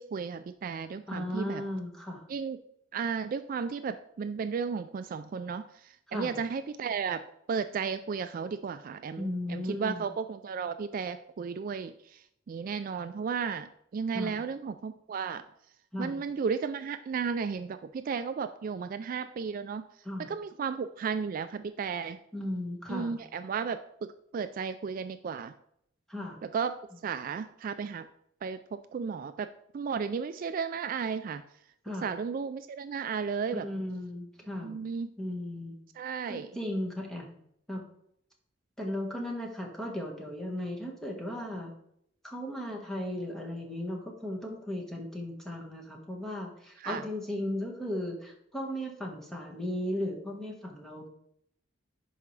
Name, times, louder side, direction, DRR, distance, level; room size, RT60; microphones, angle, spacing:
voice 1, 0.0-1.6 2.3-2.6 2.9-7.2 7.5-15.4 16.0-19.8 20.3-22.2 22.9-23.8 24.3-25.5 26.4-28.1 28.4-29.5 29.7-31.4 32.0-33.7 34.6-35.1 36.0-36.5 46.8-47.0, right 6 dB, 45° right, 10 dB, 0.3 m, -34 dB
voice 2, 1.1-2.2 6.1-6.4 9.2-10.1 14.1-14.4 15.9-16.2 20.0-20.3 22.3-23.2 26.1-26.4 31.8-32.1 33.5-34.8 35.2-35.8 36.3-37.3 37.7-37.8 38.8-41.7 42.2-51.1, left 1 dB, ahead, -1 dB, 1.4 m, -36 dB
11.0 x 4.6 x 3.2 m, 0.71 s
head